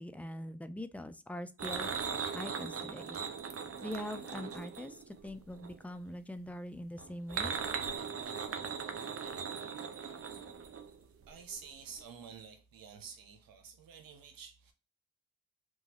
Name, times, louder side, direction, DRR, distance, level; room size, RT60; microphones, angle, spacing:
voice 1, 0.0-1.9 2.3-3.2 3.8-7.5, left 1 dB, 5° left, 0.4 m, -43 dB
sound 1, 1.6-5.8 7.0-11.3 11.5-11.7 12.0-12.1, right 6 dB, 45° right, 0.6 m, -39 dB
voice 2, 11.3-14.7, right 6 dB, 85° right, 0.7 m, -49 dB
3.0 x 2.3 x 2.8 m
supercardioid pair, 45°, 34 cm